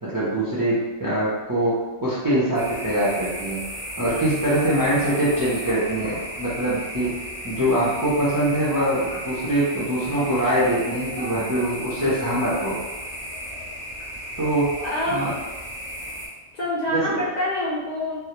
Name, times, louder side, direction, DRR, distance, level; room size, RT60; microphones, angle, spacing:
voice 1, 0.0-3.6 4.0-7.2 7.4-12.8 14.4-14.7 15.1-15.3 16.9-17.2, right 1 dB, 35° right, -9 dB, 0.3 m, -23 dB
sound 1, 2.5-16.3, equal, 10° left, 0.8 m, -34 dB
voice 2, 14.9-15.2 16.5-18.2, left 1 dB, 60° left, -7 dB, 0.4 m, -26 dB
2.2 x 2.0 x 2.9 m, 1.2 s
omnidirectional pair, 1.2 m